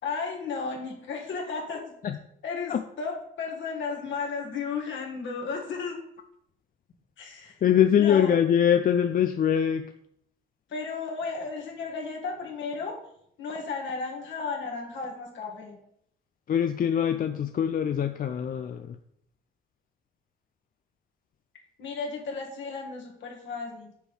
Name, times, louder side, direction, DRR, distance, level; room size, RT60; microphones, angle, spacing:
voice 1, 0.0-1.9 2.4-6.0 7.2-7.6 7.9-8.4 10.7-13.0 13.4-15.8 21.8-23.9, left 4 dB, 70° left, -1 dB, 2.1 m, -34 dB
voice 2, 7.6-9.9 16.5-19.0, left 9 dB, 45° left, 7 dB, 0.5 m, -23 dB
7.0 x 3.6 x 6.2 m, 0.71 s
cardioid pair, 90°, 20 cm